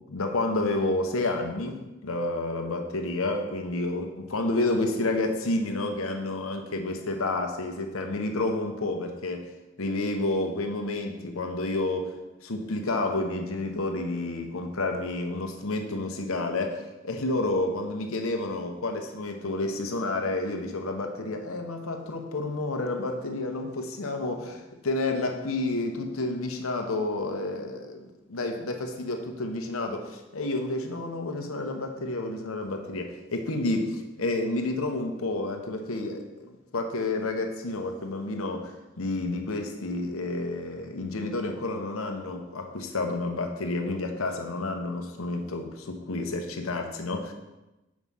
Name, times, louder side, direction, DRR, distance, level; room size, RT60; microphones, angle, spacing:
voice 1, 0.1-9.5 9.8-12.1 12.4-47.3, left 2 dB, 75° left, 4 dB, 0.9 m, -30 dB
6.1 x 4.8 x 5.5 m, 1.0 s
head